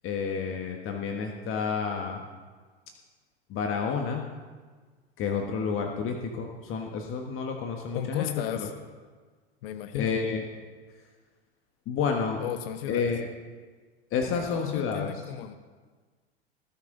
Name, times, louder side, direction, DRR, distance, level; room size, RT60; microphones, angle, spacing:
voice 1, 0.0-2.2 3.5-4.2 5.2-8.3 8.6-8.7 10.0-10.4 11.9-12.4 12.9-13.3 14.1-15.1, left 5 dB, 40° left, 2 dB, 1.5 m, -30 dB
voice 2, 7.9-8.7 9.6-10.2 12.4-13.1 14.3-15.5, left 10 dB, 65° left, 10 dB, 0.9 m, -34 dB
19.0 x 10.0 x 3.9 m, 1.5 s
hypercardioid pair, 90°, 32 cm